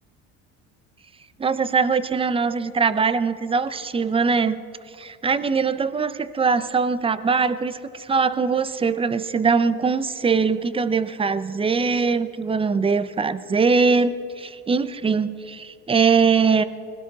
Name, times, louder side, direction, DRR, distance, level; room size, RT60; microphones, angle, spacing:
voice 1, 1.4-4.6 5.0-16.6, right 5 dB, 15° right, 14 dB, 0.6 m, -22 dB
20.0 x 17.0 x 4.1 m, 2.5 s
supercardioid pair, 105°, 34 cm